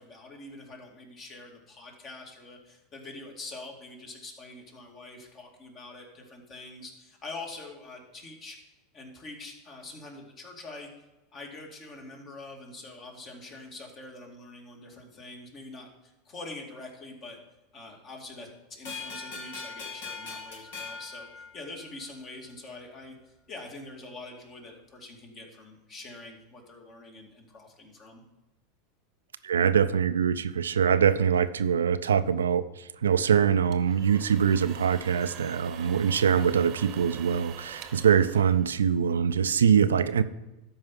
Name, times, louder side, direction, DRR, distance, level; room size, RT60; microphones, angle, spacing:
voice 1, 0.0-8.6 8.9-10.9 11.3-17.4 17.7-28.2, left 2 dB, 40° left, 1 dB, 2.3 m, -45 dB
sound 1, 18.9-22.1, left 4 dB, 70° left, 2.3 m, -40 dB
voice 2, 29.4-32.6 33.0-40.2, right 7 dB, 85° right, 12 dB, 0.4 m, -23 dB
sound 2, 33.5-39.2, right 9 dB, 45° right, 0.9 m, -46 dB
12.5 x 4.8 x 5.7 m, 1.0 s
hypercardioid pair, 90°, 0 cm